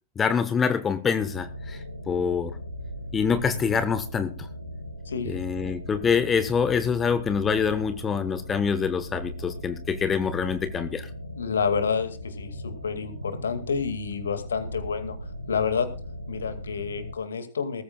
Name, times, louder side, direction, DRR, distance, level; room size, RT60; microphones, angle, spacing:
voice 1, 0.2-1.8 2.1-2.5 3.1-4.3 5.2-11.1, left 6 dB, 20° left, 11 dB, 1.3 m, -25 dB
sound 1, 1.2-17.2, left 1 dB, 85° left, 1.6 m, -38 dB
voice 2, 5.1-5.4 11.4-15.2 15.5-15.9 16.3-17.8, left 6 dB, 70° left, 9 dB, 2.3 m, -29 dB
19.5 x 14.5 x 2.4 m, 0.34 s
figure-of-eight pair, 90°, 0 cm